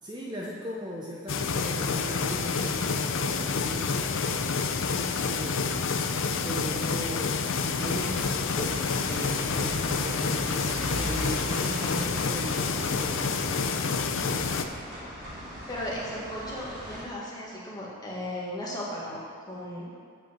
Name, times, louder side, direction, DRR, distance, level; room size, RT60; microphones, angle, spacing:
voice 1, 0.0-4.0 5.3-5.8 6.3-7.3 7.8-13.7, equal, 20° right, -3 dB, 0.6 m, -38 dB
sound 1, 1.3-14.6, left 5 dB, 55° left, 0.5 m, -28 dB
sound 2, 7.6-17.0, equal, 40° right, 2.7 m, -39 dB
voice 2, 15.7-19.2 19.5-19.9, left 1 dB, 15° left, -5 dB, 1.7 m, -36 dB
8.3 x 5.3 x 7.3 m, 2.1 s
head